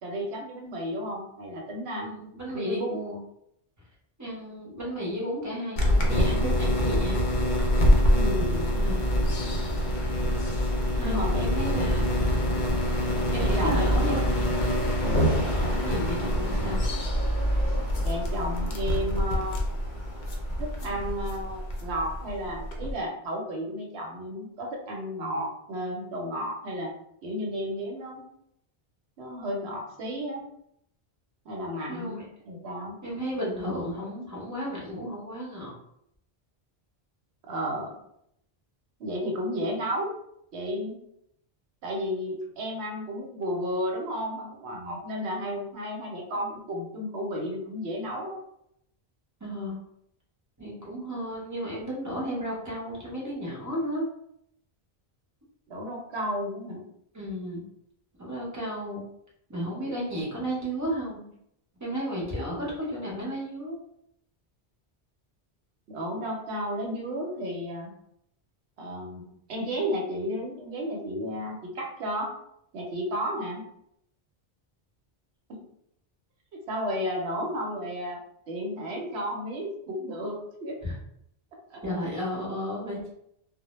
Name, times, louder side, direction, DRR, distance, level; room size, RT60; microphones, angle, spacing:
voice 1, 0.0-2.1 2.5-3.0 8.1-8.7 11.0-12.0 13.4-14.3 15.6-15.8 18.0-19.6 20.6-26.9 27.2-28.2 29.2-30.4 31.4-32.2 32.4-32.9 37.5-37.9 39.0-40.2 40.5-41.0 41.8-48.4 55.7-56.8 65.9-67.9 68.8-72.3 72.7-73.6 76.7-78.2 78.5-80.3 80.6-80.8 81.7-81.8, equal, 90° right, 0 dB, 0.9 m, -33 dB
voice 2, 2.0-3.2 4.2-7.3 8.7-9.1 10.9-12.2 13.3-15.1 15.8-16.8 20.8-21.0 31.9-32.2 33.0-35.7 49.4-49.8 50.6-54.1 57.1-57.6 58.2-59.0 59.5-61.3 61.8-63.8 80.8-80.9 81.8-83.1, equal, 20° right, -5 dB, 0.7 m, -33 dB
sound 1, 5.8-23.0, equal, 55° left, 0.6 m, -25 dB
2.1 x 2.1 x 3.0 m, 0.75 s
omnidirectional pair, 1.1 m